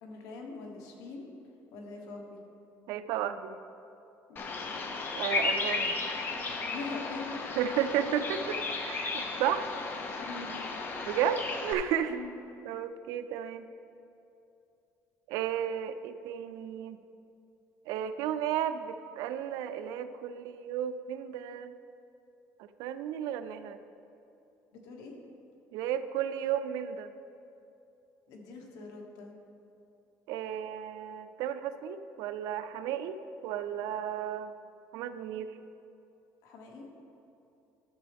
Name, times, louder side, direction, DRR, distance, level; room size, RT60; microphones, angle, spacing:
voice 1, 0.0-1.3 1.7-2.4 4.3-4.5 6.7-7.5 10.2-10.6 12.1-12.4 24.7-25.1 28.3-29.3 36.4-36.9, left 4 dB, 75° left, 1 dB, 1.3 m, -43 dB
voice 2, 2.9-3.6 5.1-6.0 7.6-8.6 8.8-9.7 11.1-12.2 12.6-13.7 15.3-17.0 17.9-21.7 22.6-23.8 25.7-27.1 30.3-33.2 33.4-34.5 34.9-35.6, right 9 dB, 85° right, 11 dB, 0.4 m, -33 dB
Bird vocalization bird call bird song, 4.4-11.7, left 3 dB, 35° left, 0.8 m, -34 dB
12.0 x 6.9 x 3.5 m, 2.7 s
cardioid pair, 145°, 6 cm